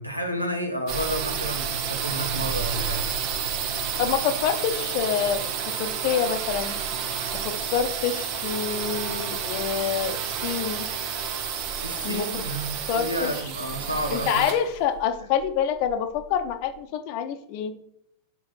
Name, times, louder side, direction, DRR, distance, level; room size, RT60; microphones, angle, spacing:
voice 1, 0.0-3.1 11.8-14.5 15.2-15.3, equal, 90° right, 4 dB, 1.2 m, -31 dB
sound 1, 0.9-16.5, right 7 dB, 45° right, 0.9 m, -30 dB
voice 2, 4.0-5.5 5.8-6.8 7.4-10.2 10.4-10.9 12.0-12.4 12.9-13.3 14.1-17.7, left 8 dB, 45° left, 9 dB, 0.8 m, -27 dB
5.1 x 4.7 x 5.8 m, 0.72 s
figure-of-eight pair, 90°, 0 cm